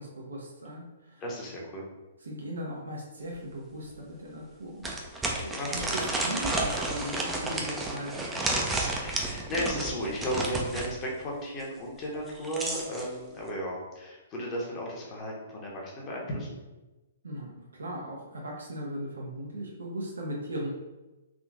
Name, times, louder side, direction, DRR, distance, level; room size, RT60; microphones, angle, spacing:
voice 1, 0.0-1.2 2.2-4.9 5.4-8.6 17.2-20.7, equal, 70° right, -2 dB, 0.6 m, -38 dB
voice 2, 1.2-1.9 5.5-6.0 8.9-16.6, equal, 25° left, -3 dB, 0.9 m, -35 dB
sound 1, 3.3-3.4 3.9-4.0 4.8-10.9 12.2-13.1, right 2 dB, 10° right, 0.4 m, -31 dB
3.6 x 2.4 x 2.3 m, 1.1 s
figure-of-eight pair, 120°, 0 cm